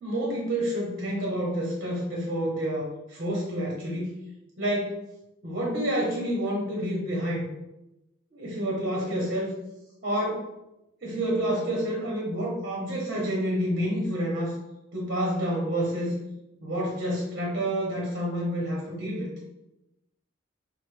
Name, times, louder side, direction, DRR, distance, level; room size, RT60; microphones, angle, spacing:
voice 1, 0.0-4.2 4.6-5.0 5.4-7.5 8.3-9.5 10.0-10.5 11.0-14.5 14.9-16.1 16.6-19.3, equal, 50° right, -4 dB, 0.9 m, -28 dB
4.2 x 2.1 x 3.2 m, 0.90 s
head